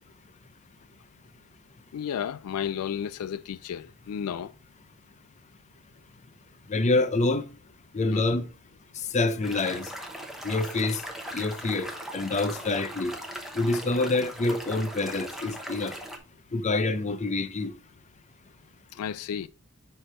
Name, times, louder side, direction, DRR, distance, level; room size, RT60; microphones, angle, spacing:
voice 1, 1.9-4.5 8.1-8.2 18.9-19.5, left 8 dB, 85° left, 0.4 m, -33 dB
voice 2, 6.7-7.4 7.9-8.5 9.1-9.9 10.4-11.0 11.3-13.1 13.5-16.0 16.5-17.7, left 2 dB, 35° left, 0.6 m, -26 dB
sound 1, 9.4-16.2, equal, ahead, 0.9 m, -39 dB
10.0 x 3.4 x 4.3 m
head